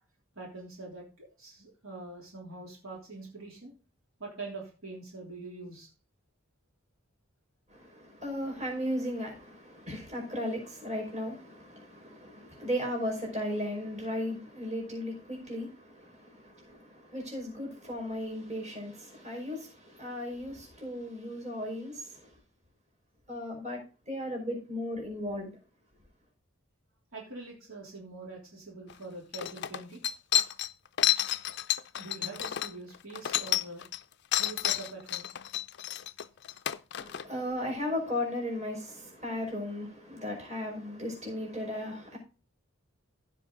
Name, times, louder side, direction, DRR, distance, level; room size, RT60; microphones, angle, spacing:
voice 1, 0.3-3.7 4.2-5.9 27.1-30.0 32.0-33.8 34.4-35.3, right 3 dB, 70° right, 3.3 m, -44 dB
voice 2, 7.7-22.3 23.3-25.5 37.0-42.2, left 1 dB, 30° right, 5.1 m, -36 dB
sound 1, 28.9-29.0 29.3-34.0 34.3-37.2, left 12 dB, 50° left, 0.4 m, -30 dB
15.5 x 5.4 x 3.9 m
head